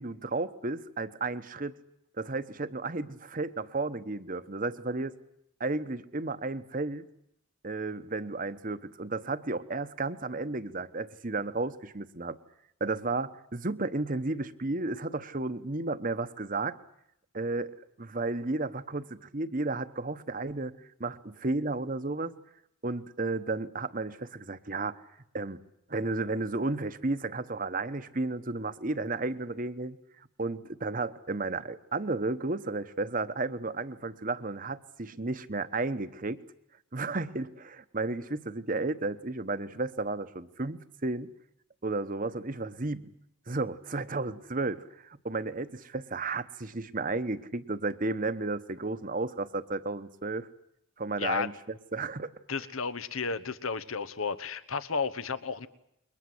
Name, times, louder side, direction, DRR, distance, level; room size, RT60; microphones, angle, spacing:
voice 1, 0.0-1.7 2.2-5.1 5.6-7.0 7.6-12.4 12.8-16.8 17.3-20.7 21.0-22.3 22.8-25.0 25.3-25.6 25.9-30.0 30.4-36.4 36.9-41.3 41.8-43.1 43.5-50.5 51.0-51.5 51.9-52.3, right 3 dB, 40° right, 12 dB, 1.1 m, -33 dB
voice 2, 51.2-51.5 52.5-55.7, left 5 dB, 85° left, 13 dB, 1.2 m, -32 dB
28.5 x 22.5 x 8.0 m, 0.76 s
head